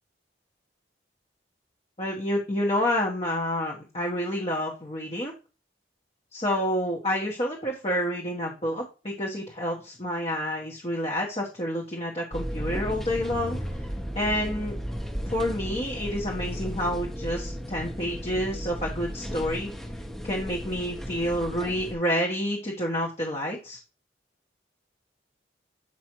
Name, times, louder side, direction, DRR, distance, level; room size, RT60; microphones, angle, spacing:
voice 1, 2.0-5.3 6.3-13.6 14.1-14.8 15.2-19.7 20.2-23.8, equal, 35° left, -2 dB, 1.0 m, -29 dB
sound 1, 12.3-21.9, equal, ahead, 0.8 m, -35 dB
7.6 x 4.8 x 3.0 m, 0.32 s
head